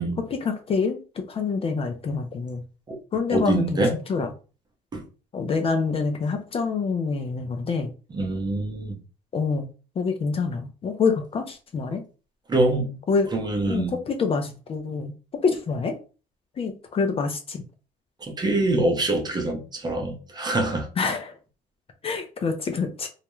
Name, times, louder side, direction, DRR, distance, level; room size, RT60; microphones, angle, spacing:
voice 1, 0.3-2.6 3.1-4.3 5.3-7.9 9.3-9.7 10.0-12.0 13.1-13.3 13.7-15.1 15.4-16.0 16.6-17.6 21.0-21.4 22.0-23.1, left 4 dB, 35° left, 0.4 m, -26 dB
voice 2, 3.3-3.9 4.9-5.1 8.1-9.0 12.5-13.0 13.3-14.0 18.2-20.9, right 2 dB, 25° right, 0.6 m, -25 dB
2.3 x 2.1 x 2.9 m
cardioid pair, 110°, 17 cm